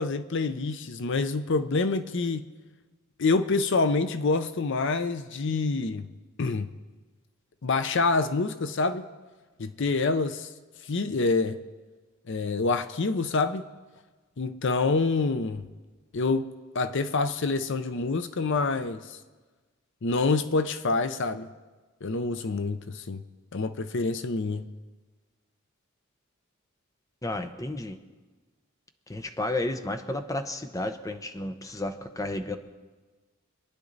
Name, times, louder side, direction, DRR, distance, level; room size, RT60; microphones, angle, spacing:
voice 1, 0.0-2.5 3.2-6.1 6.4-6.7 7.6-9.0 9.6-10.5 10.9-11.6 12.3-13.6 14.4-15.7 16.1-19.0 20.0-21.5 22.0-23.2 23.5-24.7, left 3 dB, 60° left, 0.6 m, -26 dB
voice 2, 27.2-28.0 29.1-32.6, left 2 dB, 15° left, 0.7 m, -32 dB
25.5 x 10.0 x 4.0 m
head